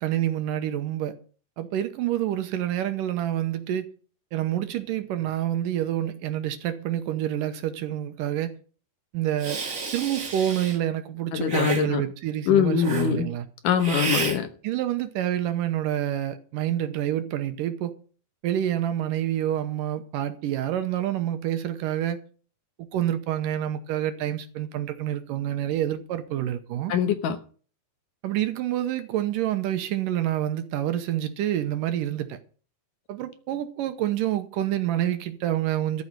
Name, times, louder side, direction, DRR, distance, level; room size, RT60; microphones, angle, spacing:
voice 1, 0.0-1.1 1.6-3.9 4.3-8.6 9.1-9.6 9.9-13.5 14.6-17.9 18.4-22.2 22.8-26.9 28.2-32.4 33.1-36.0, right 12 dB, 75° right, 2.4 m, -27 dB
Hiss, 9.4-10.8 11.5-11.8 12.8-13.1 13.8-14.4, right 4 dB, 45° right, 1.1 m, -30 dB
voice 2, 11.3-12.0 12.5-13.3 13.6-14.5 26.9-27.4, left 8 dB, 70° left, 2.4 m, -23 dB
13.5 x 5.6 x 9.2 m
omnidirectional pair, 4.2 m